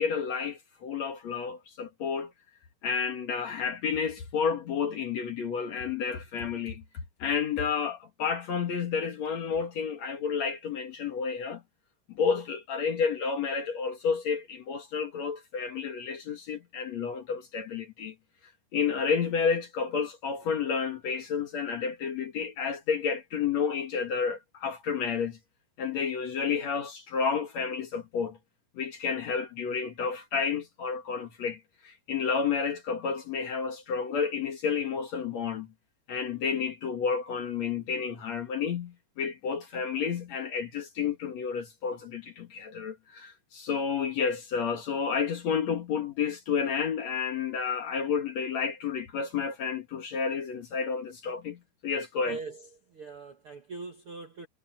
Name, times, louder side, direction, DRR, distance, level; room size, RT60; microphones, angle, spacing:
voice 1, 0.0-2.3 2.8-6.8 7.2-11.6 12.1-18.1 18.7-25.4 25.8-28.4 28.7-35.7 36.1-52.4, left 6 dB, 55° left, 2.4 m, -31 dB
voice 2, 52.3-54.5, right 4 dB, 55° right, 1.5 m, -41 dB
omnidirectional pair, 4.5 m